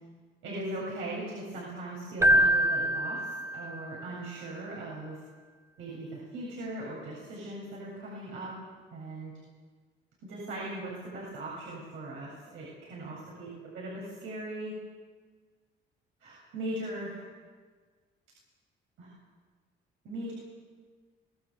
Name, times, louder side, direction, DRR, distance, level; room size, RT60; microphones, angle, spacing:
voice 1, 0.4-5.2 5.8-8.5 8.9-9.3 10.2-14.7 16.2-17.2 19.0-19.1 20.0-20.3, right 1 dB, 85° right, -5 dB, 7.9 m, -39 dB
Keyboard (musical), 2.2-4.0, right 1 dB, 15° right, 1.1 m, -25 dB
25.5 x 18.5 x 8.2 m, 1.5 s
cardioid pair, 90°, 20 cm